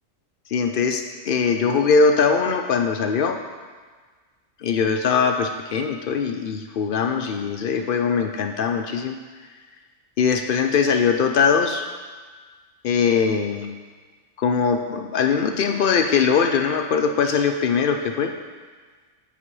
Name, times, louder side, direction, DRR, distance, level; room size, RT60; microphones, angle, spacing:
voice 1, 0.5-3.4 4.6-9.2 10.2-11.9 12.8-13.7 14.4-18.3, left 5 dB, 70° left, 6 dB, 0.5 m, -21 dB
8.9 x 8.0 x 3.2 m, 1.5 s
omnidirectional pair, 1.4 m